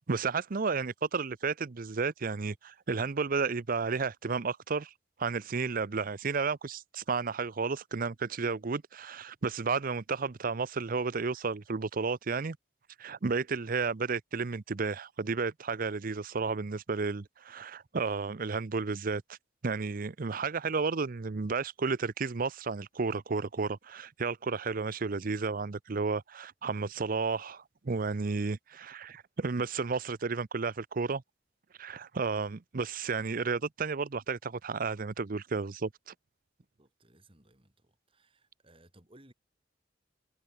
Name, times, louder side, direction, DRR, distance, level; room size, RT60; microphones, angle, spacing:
voice 1, 0.1-4.9 5.2-12.6 13.0-19.2 19.6-31.2 31.8-36.1, right 4 dB, 50° right, 0.6 m, -32 dB
voice 2, 36.8-39.3, right 1 dB, 30° right, 6.3 m, -61 dB
head